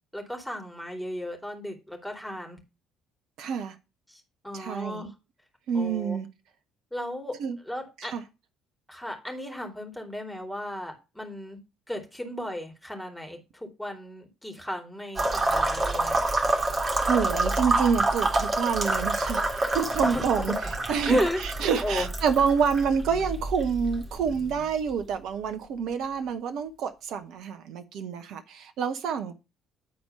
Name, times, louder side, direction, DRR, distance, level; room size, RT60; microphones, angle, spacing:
voice 1, 0.1-2.6 4.1-5.1 5.7-6.2 6.9-7.3 7.7-8.1 8.9-11.6 11.9-16.2 20.0-20.2 21.1-21.4 21.8-22.1, left 1 dB, 5° left, 2.8 m, -34 dB
voice 2, 3.4-3.7 4.5-5.1 5.7-6.3 7.4-7.6 8.0-8.2 17.0-20.5 20.9-29.3, right 6 dB, 60° right, 0.9 m, -27 dB
sound 1, 15.2-24.9, right 2 dB, 30° right, 2.2 m, -27 dB
9.9 x 4.4 x 5.6 m
figure-of-eight pair, 50°, 0 cm